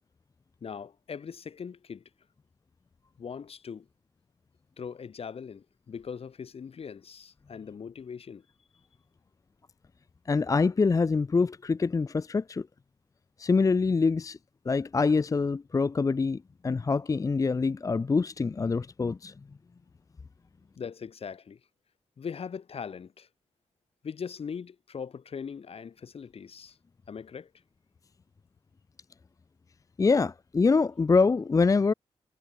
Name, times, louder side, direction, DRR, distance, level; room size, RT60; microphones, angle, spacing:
voice 1, 0.6-2.0 3.2-3.9 4.8-8.4 20.8-21.6 22.2-23.3 24.0-26.8 27.1-27.5, left 6 dB, 65° left, 2.6 m, -40 dB
voice 2, 10.3-12.7 13.4-14.4 14.7-19.3 30.0-31.9, left 4 dB, 30° left, 0.5 m, -25 dB
cardioid pair, 60°, 11 cm